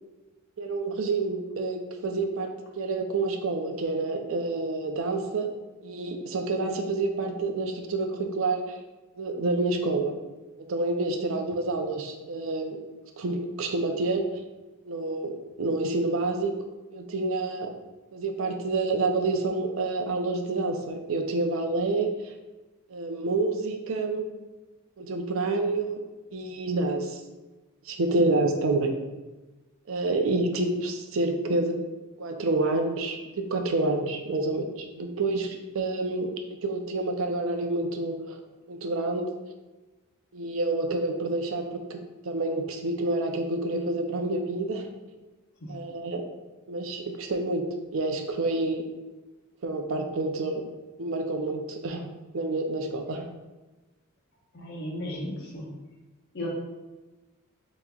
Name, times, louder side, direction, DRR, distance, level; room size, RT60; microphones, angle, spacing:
voice 1, 0.6-5.5 5.8-8.8 9.2-10.2 10.7-12.8 13.2-14.2 14.9-16.5 16.9-17.7 18.1-22.3 22.9-24.3 25.0-26.0 26.3-27.2 27.9-28.9 29.9-31.8 32.2-36.3 36.6-38.4 38.7-39.3 40.3-44.9 45.7-46.2 46.7-47.7 47.9-48.8 49.6-50.6 51.0-52.1 52.3-53.3, right 2 dB, 65° right, 4 dB, 0.5 m, -28 dB
voice 2, 54.5-55.7 56.3-56.5, left 1 dB, 50° left, -3 dB, 1.2 m, -35 dB
7.4 x 3.0 x 2.3 m, 1.1 s
head